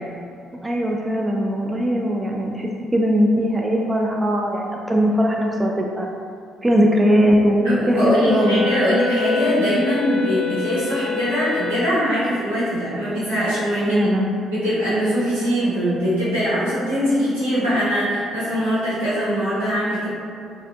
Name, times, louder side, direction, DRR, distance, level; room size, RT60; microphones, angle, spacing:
voice 1, 0.6-6.1 6.6-8.8 13.9-14.3, equal, 20° right, 0 dB, 0.4 m, -20 dB
voice 2, 7.6-14.1 14.5-20.1, equal, 85° right, -13 dB, 1.3 m, -22 dB
Wind instrument woodwind instrument, 8.2-12.1, left 6 dB, 40° left, 0.6 m, -26 dB
4.1 x 2.6 x 2.3 m, 2.4 s
hypercardioid pair, 50°, 0 cm